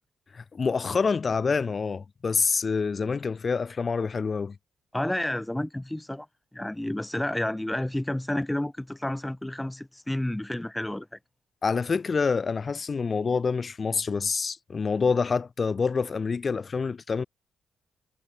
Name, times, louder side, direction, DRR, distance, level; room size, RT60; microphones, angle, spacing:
voice 1, 0.3-4.5 11.6-17.2, left 5 dB, 30° left, 1.4 m, -27 dB
voice 2, 4.9-6.3 6.5-11.1, left 1 dB, 5° left, 1.7 m, -30 dB
cardioid pair, 145°, 0 cm